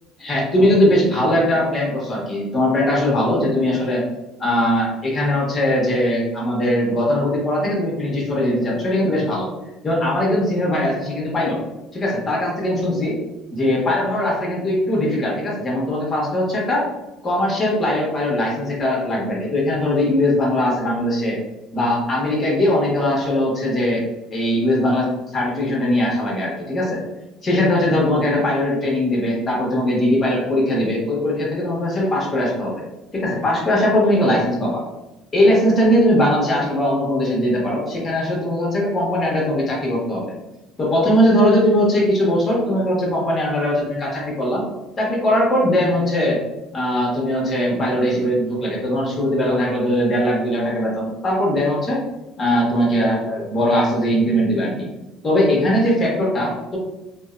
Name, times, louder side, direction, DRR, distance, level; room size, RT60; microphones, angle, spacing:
voice 1, 0.2-4.0 4.4-9.5 9.8-11.6 11.9-13.2 13.5-16.9 17.2-21.4 21.7-24.0 24.3-27.0 27.4-32.7 33.1-34.8 35.3-40.3 40.8-44.7 45.0-46.4 46.7-52.0 52.4-54.8 55.2-56.8, left 1 dB, 30° left, -3 dB, 1.1 m, -20 dB
2.6 x 2.1 x 2.4 m, 1.0 s
supercardioid pair, 90°, 0 cm